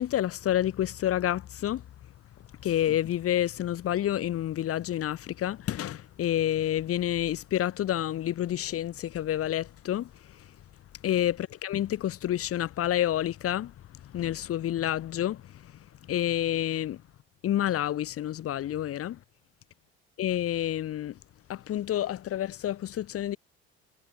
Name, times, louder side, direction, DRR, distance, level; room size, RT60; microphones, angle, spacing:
voice 1, 0.0-1.9 2.4-10.6 11.0-17.0 17.4-19.2 20.2-21.2 21.5-23.4, left 12 dB, 45° left, 1.0 m, -29 dB
hypercardioid pair, 60°, 32 cm